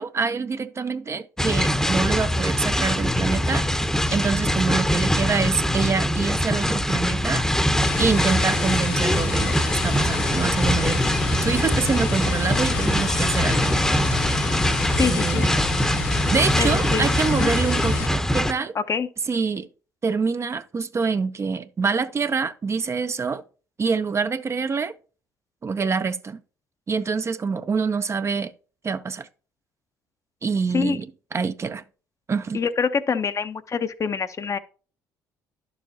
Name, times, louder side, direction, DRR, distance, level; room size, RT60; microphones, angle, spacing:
voice 1, 0.0-3.6 4.1-7.4 8.0-11.0 11.4-13.8 15.0-15.5 16.3-18.7 19.3-19.7 20.0-23.4 23.8-24.9 25.6-26.4 26.9-28.5 28.8-29.3 30.4-31.1 31.3-31.8 32.3-32.6, right 5 dB, 35° right, 0.6 m, -26 dB
sound 1, 1.4-18.5, equal, 5° left, 0.8 m, -22 dB
sound 2, 7.8-18.1, left 8 dB, 85° left, 0.7 m, -31 dB
voice 2, 15.0-15.5 16.6-17.1 17.4-17.5 18.7-19.1 30.7-31.0 32.5-34.6, left 6 dB, 40° left, 0.7 m, -25 dB
11.0 x 7.0 x 2.8 m
hypercardioid pair, 60°, 8 cm